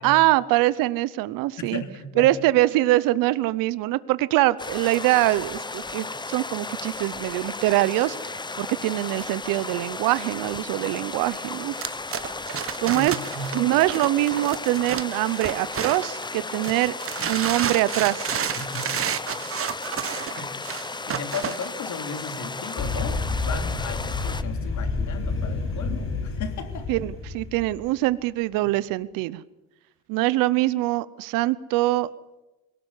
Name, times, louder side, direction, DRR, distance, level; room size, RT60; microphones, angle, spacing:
voice 1, 0.0-1.8 2.2-11.7 12.8-13.1 13.5-17.0 17.3-18.3 26.9-29.4 30.1-32.1, right 17 dB, 85° right, 17 dB, 0.8 m, -23 dB
voice 2, 1.6-2.3 12.9-13.5 18.6-19.4 20.3-26.9, left 4 dB, 60° left, 6 dB, 3.2 m, -36 dB
sound 1, 4.6-24.4, left 3 dB, 15° left, 0.9 m, -35 dB
sound 2, 11.7-16.2 16.6-21.7, right 9 dB, 40° right, 1.1 m, -31 dB
sound 3, 22.8-27.9, left 3 dB, 40° left, 7.3 m, -29 dB
22.0 x 18.0 x 8.3 m, 1.0 s
cardioid pair, 90°, 33 cm